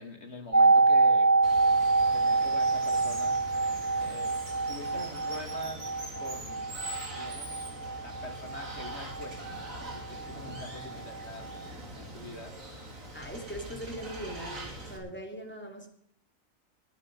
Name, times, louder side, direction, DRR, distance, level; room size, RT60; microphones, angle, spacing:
voice 1, 0.0-1.3 2.1-3.4 4.0-4.4 4.7-5.8 6.2-6.8 7.1-7.6 8.0-9.4 9.8-11.5 12.0-12.6, left 2 dB, 50° left, 5 dB, 2.6 m, -44 dB
sound 1, 0.5-10.3 10.5-10.6, right 3 dB, 15° right, 0.6 m, -26 dB
Water, 1.4-15.0, right 1 dB, 70° right, 3.4 m, -43 dB
voice 2, 13.1-15.9, equal, 5° left, 2 dB, 2.9 m, -40 dB
20.5 x 9.3 x 5.4 m, 0.72 s
omnidirectional pair, 1.5 m